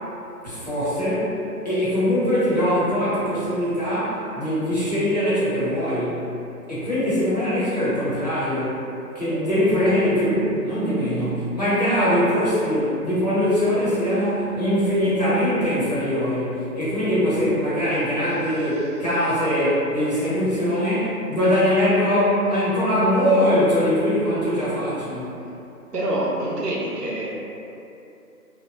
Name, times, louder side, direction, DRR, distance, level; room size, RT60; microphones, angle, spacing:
voice 1, 0.4-6.3 6.7-8.8 9.1-25.4, equal, 25° left, -13 dB, 0.6 m, -22 dB
voice 2, 25.9-27.3, right 1 dB, 75° right, -5 dB, 0.8 m, -26 dB
2.8 x 2.1 x 2.6 m, 2.8 s
figure-of-eight pair, 155°, 48 cm